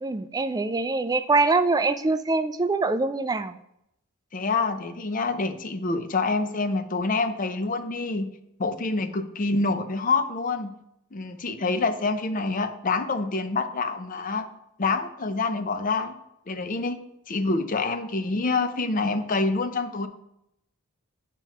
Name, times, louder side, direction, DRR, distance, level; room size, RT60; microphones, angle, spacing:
voice 1, 0.0-3.6, right 3 dB, 15° right, 10 dB, 0.3 m, -24 dB
voice 2, 4.3-8.3 8.6-10.7 11.1-14.5 14.8-16.1 16.5-17.0 17.3-20.1, left 3 dB, 35° left, 9 dB, 0.5 m, -26 dB
9.0 x 3.0 x 5.7 m, 0.81 s
head